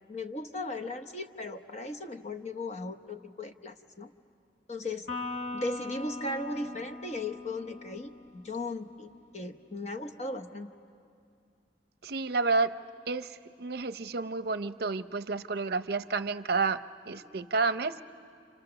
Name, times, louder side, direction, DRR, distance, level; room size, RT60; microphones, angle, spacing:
voice 1, 0.1-4.1 4.7-5.1 5.5-10.7, left 2 dB, 40° left, 7 dB, 1.0 m, -37 dB
Electric guitar, 5.1-8.6, left 3 dB, 70° left, 4.6 m, -40 dB
voice 2, 12.0-12.7 13.1-18.0, right 4 dB, 60° right, 12 dB, 0.6 m, -30 dB
29.5 x 28.0 x 6.9 m, 2.4 s
head